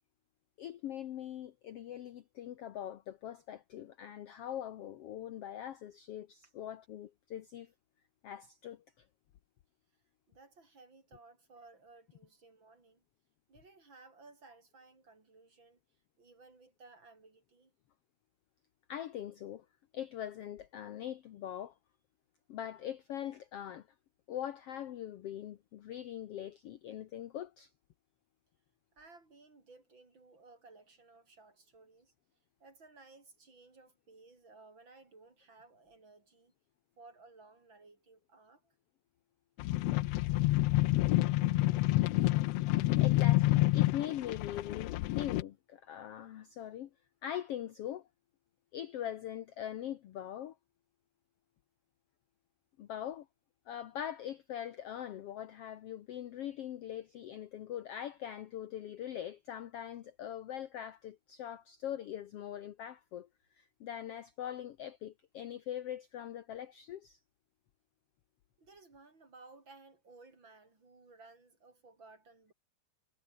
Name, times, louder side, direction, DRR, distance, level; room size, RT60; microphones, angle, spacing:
voice 1, 0.6-7.7 8.2-8.8 18.9-19.6 19.9-21.7 22.5-23.9 24.3-27.7 43.0-46.9 47.2-48.1 48.7-50.5 52.8-53.3 53.7-63.3 63.6-67.2, left 11 dB, 65° left, 1.6 m, -42 dB
voice 2, 10.3-13.0 13.5-15.8 16.2-17.7 28.9-32.1 32.6-36.5 37.0-38.7 68.6-72.5, right 3 dB, 35° right, 4.9 m, -58 dB
sound 1, 39.6-45.4, left 17 dB, 90° left, 1.4 m, -28 dB
omnidirectional pair, 3.6 m